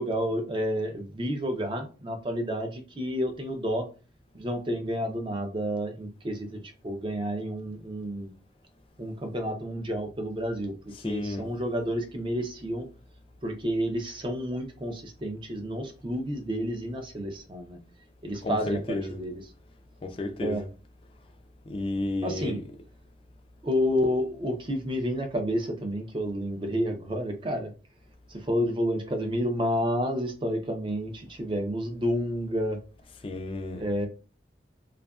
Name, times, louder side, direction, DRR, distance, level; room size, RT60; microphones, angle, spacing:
voice 1, 0.0-3.9 4.3-8.3 9.0-10.7 11.0-12.9 13.4-17.8 18.2-19.4 20.4-20.6 22.2-22.6 23.6-27.7 28.3-32.8 33.8-34.1, equal, 30° right, 0.5 m, -30 dB
voice 2, 10.9-11.5 18.4-19.2 20.0-20.7 21.7-22.6 33.2-33.8, left 2 dB, 30° left, 0.3 m, -32 dB
2.7 x 2.4 x 2.3 m
head